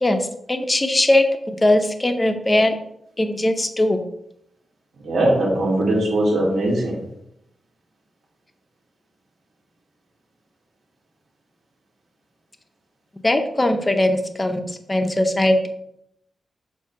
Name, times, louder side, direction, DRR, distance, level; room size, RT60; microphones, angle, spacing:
voice 1, 0.0-2.8 3.2-4.0 13.2-14.6 14.9-15.7, left 1 dB, 15° left, 7 dB, 0.6 m, -20 dB
voice 2, 5.0-7.0, right 1 dB, 70° right, -3 dB, 2.2 m, -20 dB
7.3 x 2.6 x 5.7 m, 0.76 s
wide cardioid pair, 165°, 0 cm